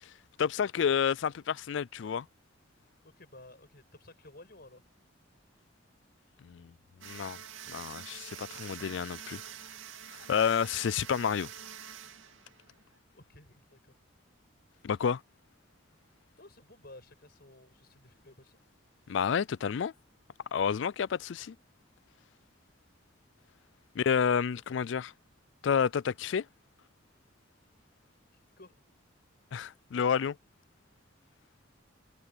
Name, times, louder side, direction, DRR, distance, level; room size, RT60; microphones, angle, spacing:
voice 1, 0.4-2.3 6.4-6.7 7.0-7.4 7.7-9.4 10.1-11.5 14.8-15.2 19.1-19.9 20.5-21.5 24.0-25.1 25.6-26.4 29.5-30.4, left 7 dB, 65° left, 0.4 m, -30 dB
voice 2, 3.0-4.9 13.1-14.0 16.4-18.6 28.6-28.8, left 2 dB, 50° left, 6.0 m, -54 dB
sound 1, 7.0-13.0, right 9 dB, 80° right, 2.3 m, -46 dB
head